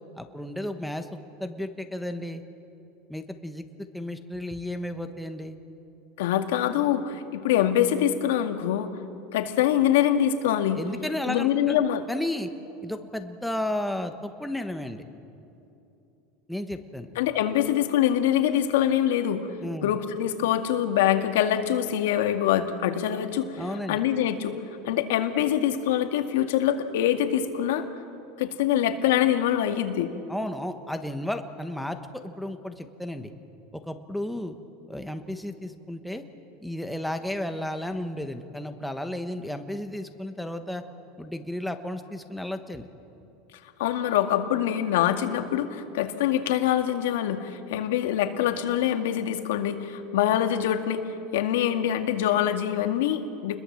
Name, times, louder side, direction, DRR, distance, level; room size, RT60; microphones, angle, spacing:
voice 1, 0.2-1.1 1.4-2.4 3.1-5.6 10.7-11.8 12.1-12.5 12.8-15.0 16.5-17.1 19.6-20.0 23.6-24.0 30.3-32.0 32.2-33.3 33.7-34.5 34.9-36.2 36.6-40.8 41.2-42.9, left 1 dB, ahead, 6 dB, 1.2 m, -33 dB
voice 2, 6.2-8.9 9.3-10.8 11.2-12.0 17.2-19.5 19.8-23.6 23.9-24.5 24.8-27.9 28.4-30.1 43.8-51.0 51.3-53.6, left 11 dB, 85° left, 6 dB, 2.1 m, -24 dB
29.0 x 21.5 x 7.6 m, 2.8 s
supercardioid pair, 160°, 0 cm